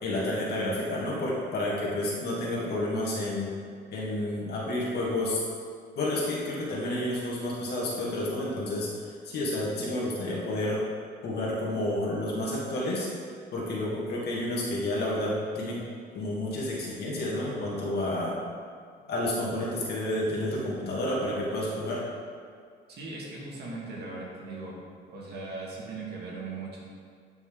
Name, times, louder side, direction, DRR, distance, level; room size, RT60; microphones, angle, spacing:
voice 1, 0.0-3.5 3.9-5.4 6.0-8.9 9.2-10.8 11.2-13.1 13.5-15.8 16.1-18.4 19.1-22.0, left 1 dB, 60° left, -5 dB, 2.3 m, -30 dB
voice 2, 22.9-24.7 25.1-26.8, right 3 dB, 60° right, -4 dB, 2.2 m, -38 dB
9.7 x 6.1 x 3.9 m, 2.1 s
cardioid pair, 150°, 19 cm